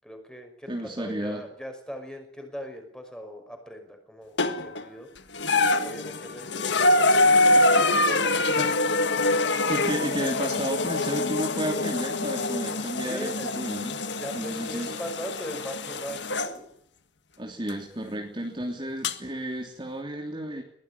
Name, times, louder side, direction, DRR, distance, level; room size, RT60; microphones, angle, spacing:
voice 1, 0.0-5.1 5.8-7.1 7.3-8.6 8.8-9.7 13.0-13.6 14.1-16.7, equal, 5° left, 5 dB, 5.6 m, -40 dB
voice 2, 0.7-1.5 8.5-8.9 9.7-14.0 14.3-14.9 17.4-20.6, right 1 dB, 25° right, 1 dB, 3.0 m, -32 dB
sound 1, 4.4-4.8 5.3-16.5 17.7-17.8 19.0-19.1, left 2 dB, 65° left, 1.8 m, -24 dB
22.5 x 18.5 x 9.8 m, 0.70 s
head